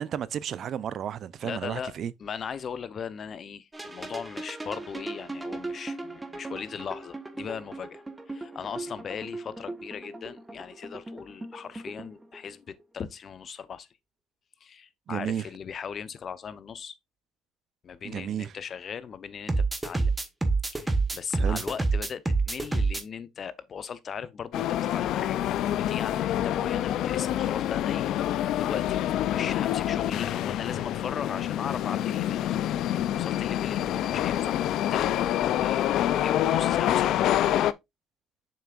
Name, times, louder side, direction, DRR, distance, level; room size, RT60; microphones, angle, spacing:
voice 1, 0.0-2.1 15.1-15.5 18.0-18.5 21.3-21.7, right 9 dB, 55° right, 0.5 m, -32 dB
voice 2, 1.4-1.9 2.2-13.9 14.6-17.0 17.8-20.1 20.7-28.1 28.6-32.8 33.2-37.6, left 7 dB, 45° left, 0.8 m, -38 dB
sound 1, 3.7-12.4 19.5-23.0, right 3 dB, 15° right, 1.3 m, -30 dB
sound 2, 24.5-37.7, left 12 dB, 65° left, 0.4 m, -27 dB
7.2 x 5.8 x 2.5 m
supercardioid pair, 85°, 0 cm